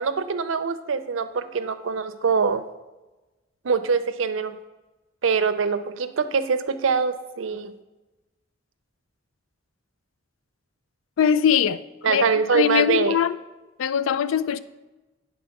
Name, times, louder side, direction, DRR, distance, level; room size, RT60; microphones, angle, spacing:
voice 1, 0.0-2.6 3.6-4.5 5.2-7.7 12.0-13.2, right 5 dB, 80° right, 0.5 m, -23 dB
voice 2, 11.2-12.2 12.5-13.4 13.8-14.6, left 8 dB, 90° left, 0.4 m, -21 dB
9.4 x 4.1 x 5.7 m
head